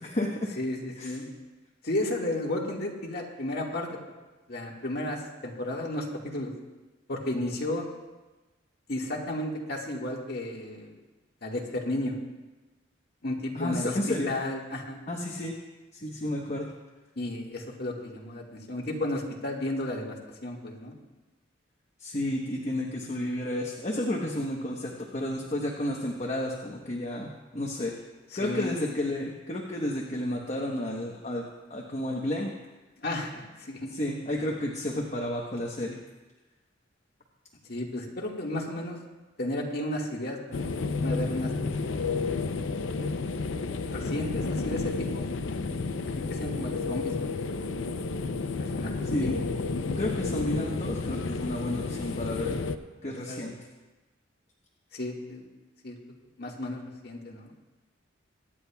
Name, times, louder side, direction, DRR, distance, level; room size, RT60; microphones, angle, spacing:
voice 1, 0.0-0.5 1.0-1.2 13.5-14.3 15.1-15.5 15.9-16.7 22.0-27.9 28.3-32.5 33.9-36.0 49.0-49.4 50.0-52.6 53.0-53.5, left 1 dB, 35° left, -1 dB, 1.1 m, -31 dB
voice 2, 0.6-1.3 1.8-3.9 4.5-6.5 7.1-7.9 8.9-10.9 11.4-12.2 13.2-15.1 17.2-20.2 20.4-20.9 28.4-28.8 33.0-34.0 37.7-39.0 39.4-40.7 40.9-42.1 42.4-42.6 43.8-45.3 46.3-47.4 48.6-49.4 53.0-53.5 54.9-55.5 55.8-56.0 56.4-57.5, left 1 dB, 55° left, -1 dB, 1.8 m, -33 dB
sound 1, 40.5-52.8, left 3 dB, 90° left, 0.6 m, -31 dB
23.5 x 9.9 x 2.3 m, 1.2 s
head